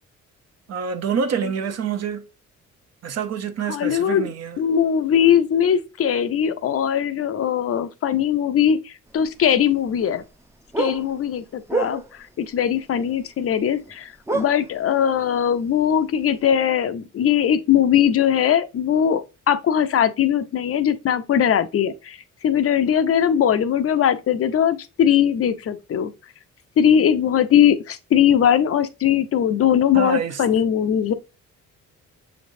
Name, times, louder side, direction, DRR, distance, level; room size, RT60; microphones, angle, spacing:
voice 1, 0.7-2.3 3.0-4.6 29.9-30.4, right 6 dB, 55° right, 0.8 m, -26 dB
voice 2, 3.7-4.3 4.6-10.2 10.8-12.0 12.4-22.2 22.4-26.1 26.8-31.1, left 9 dB, 50° left, 0.5 m, -20 dB
sound 1, 9.1-10.0 10.2-12.4 13.2-13.6 13.8-14.0 14.3-15.2 15.5-15.6 16.2-16.3, right 3 dB, 10° right, 0.6 m, -28 dB
6.3 x 3.2 x 2.6 m
cardioid pair, 90°, 30 cm